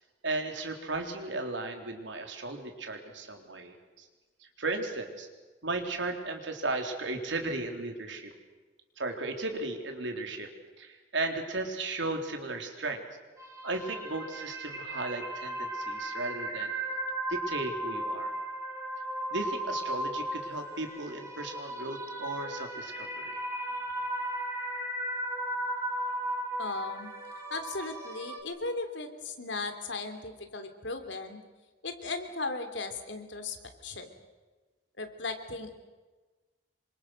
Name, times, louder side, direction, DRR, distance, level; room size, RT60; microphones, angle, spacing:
voice 1, 0.2-4.1 4.6-5.3 5.6-8.3 9.0-10.5 10.8-13.0 13.6-16.7 17.3-18.3 19.3-23.4, right 2 dB, 80° right, 4 dB, 3.9 m, -35 dB
sound 1, 13.4-28.4, right 1 dB, 15° right, 3.7 m, -36 dB
voice 2, 26.6-27.1 27.5-31.4 31.8-33.6 33.8-34.1 35.0-35.7, left 3 dB, 75° left, 7 dB, 3.2 m, -37 dB
27.5 x 25.0 x 6.6 m, 1.3 s
head